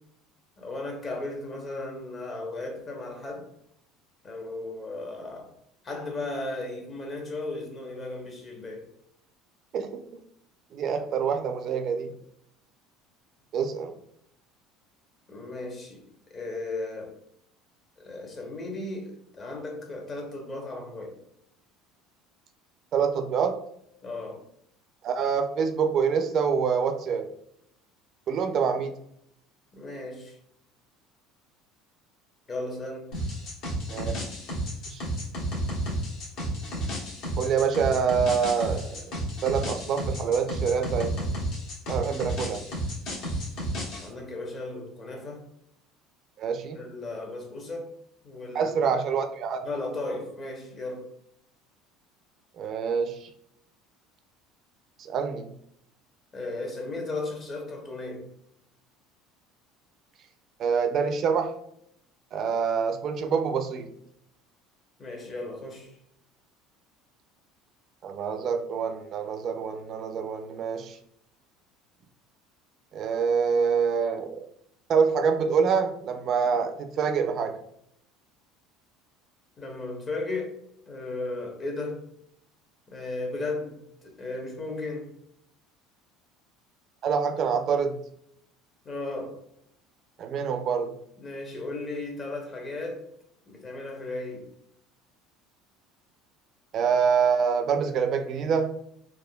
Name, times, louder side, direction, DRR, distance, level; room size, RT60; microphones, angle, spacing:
voice 1, 0.6-3.5 4.2-5.5 5.8-8.9 15.3-17.1 18.0-21.2 24.0-24.4 29.7-30.4 32.5-33.1 44.0-45.4 46.7-47.9 48.2-48.8 49.6-51.1 56.3-58.3 65.0-66.0 79.6-80.5 80.9-82.0 82.9-85.1 88.8-89.4 91.2-93.0 93.5-94.5, left 2 dB, 35° left, 2 dB, 0.8 m, -35 dB
voice 2, 10.7-12.1 13.5-13.9 22.9-23.6 25.0-27.3 28.3-28.9 33.9-34.2 34.9-35.0 37.4-39.1 39.4-41.3 41.9-42.6 46.4-46.8 48.5-49.6 52.6-53.3 55.0-55.5 60.6-61.5 62.3-63.9 68.0-71.0 72.9-74.4 74.9-77.6 87.0-88.0 90.2-90.9 96.7-98.8, right 6 dB, 50° right, 7 dB, 0.4 m, -26 dB
sound 1, 33.1-44.1, equal, 65° left, 1.2 m, -32 dB
3.5 x 2.1 x 2.2 m, 0.72 s
supercardioid pair, 105°, 0 cm